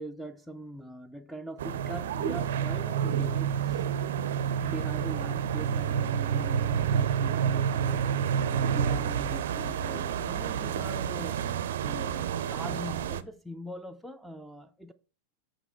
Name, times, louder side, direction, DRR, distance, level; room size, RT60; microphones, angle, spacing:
voice 1, 0.0-3.8 4.6-8.2 8.5-11.4 11.8-14.9, equal, ahead, 0.4 m, -41 dB
sound 1, 1.6-13.2, right 8 dB, 60° right, 0.4 m, -29 dB
8.0 x 3.8 x 4.3 m
figure-of-eight pair, 90°, 0 cm